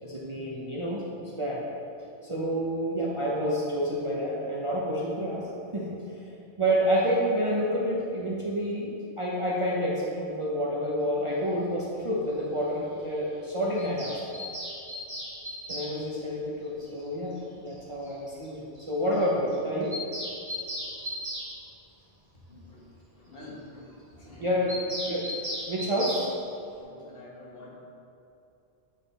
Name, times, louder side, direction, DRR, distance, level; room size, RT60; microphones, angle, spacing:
voice 1, 0.0-1.7 2.2-5.5 5.7-14.2 15.7-19.9 24.4-25.3 25.7-26.3, equal, 35° right, -6 dB, 0.6 m, -29 dB
Bird vocalization bird call bird song, 13.8-15.9 17.4-17.5 17.7-17.8 18.0-18.1 18.4-18.5 18.7-18.8 19.1-19.2 19.5-21.5 24.7-26.2, equal, 50° right, 1.7 m, -36 dB
voice 2, 22.3-25.2 25.6-25.7 26.1-26.2 26.8-27.8, left 1 dB, 55° left, -3 dB, 1.3 m, -49 dB
8.3 x 3.7 x 4.0 m, 2.8 s
omnidirectional pair, 1.2 m